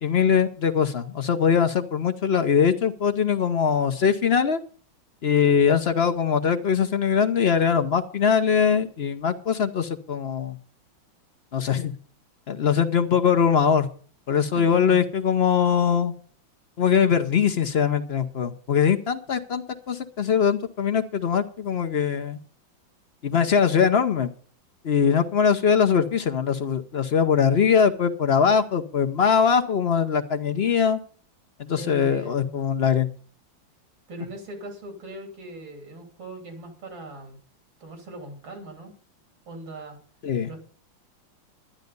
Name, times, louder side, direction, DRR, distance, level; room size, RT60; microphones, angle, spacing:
voice 1, 0.0-4.6 5.2-10.6 11.5-11.9 12.5-13.9 14.3-16.1 16.8-22.4 23.2-24.3 24.8-31.0 31.6-33.1 40.2-40.5, left 7 dB, 55° left, 8 dB, 0.7 m, -22 dB
voice 2, 14.4-15.0 31.7-32.5 34.1-37.4 37.8-38.9 39.5-40.0 40.4-40.6, right 2 dB, 85° right, 3 dB, 3.7 m, -39 dB
12.0 x 10.5 x 5.3 m, 0.44 s
omnidirectional pair, 2.1 m